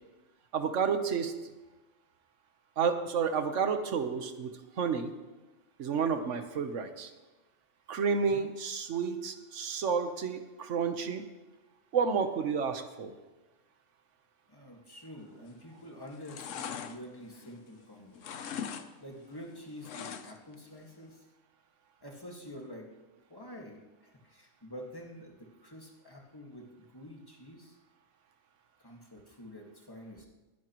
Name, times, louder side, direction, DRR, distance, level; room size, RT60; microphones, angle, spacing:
voice 1, 0.5-1.3 2.8-4.5 4.8-5.1 5.8-7.1 7.9-11.2 11.9-13.1, right 6 dB, 70° right, 8 dB, 1.3 m, -30 dB
voice 2, 14.5-18.4 18.7-21.3 22.0-22.9 23.3-27.8 28.8-30.3, equal, 20° left, -1 dB, 1.8 m, -48 dB
sound 1, 15.4-15.8 16.1-17.8 18.1-18.9 19.1-20.5 20.9-21.0, left 7 dB, 75° left, 1.1 m, -41 dB
20.5 x 11.0 x 3.1 m, 1.1 s
omnidirectional pair, 1.3 m